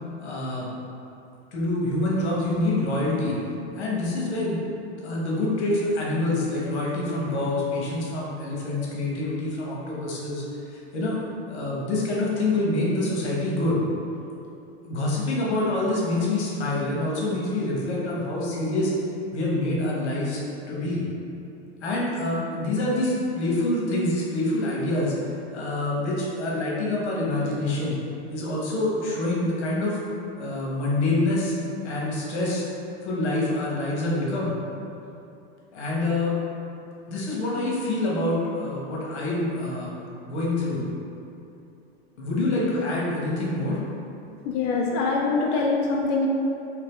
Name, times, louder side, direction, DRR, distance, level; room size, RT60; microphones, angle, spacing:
voice 1, 0.2-0.7 1.5-3.4 3.7-4.6 5.0-11.2 11.5-13.8 14.8-18.9 19.3-20.4 20.7-21.0 21.8-25.1 25.5-28.0 28.3-30.0 30.4-31.5 31.8-32.7 33.0-34.5 35.7-36.4 37.1-39.9 40.3-40.8 42.2-43.8, left 2 dB, 85° left, -4 dB, 1.1 m, -26 dB
voice 2, 44.4-46.3, left 4 dB, 40° left, -1 dB, 0.4 m, -24 dB
3.0 x 2.8 x 3.6 m, 2.7 s
supercardioid pair, 130°, 33 cm